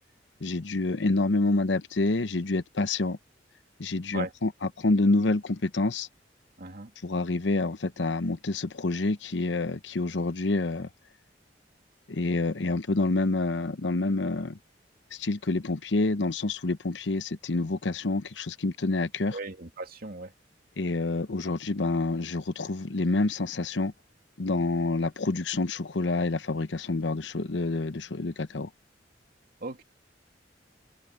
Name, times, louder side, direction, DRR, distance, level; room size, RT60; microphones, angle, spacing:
voice 1, 0.4-3.2 3.8-6.1 7.0-10.9 12.1-14.6 15.1-19.4 20.8-23.9 24.4-28.7, left 2 dB, 80° left, 0.9 m, -27 dB
voice 2, 6.6-6.9 19.3-20.3 29.6-29.8, right 2 dB, 55° right, 2.5 m, -37 dB
head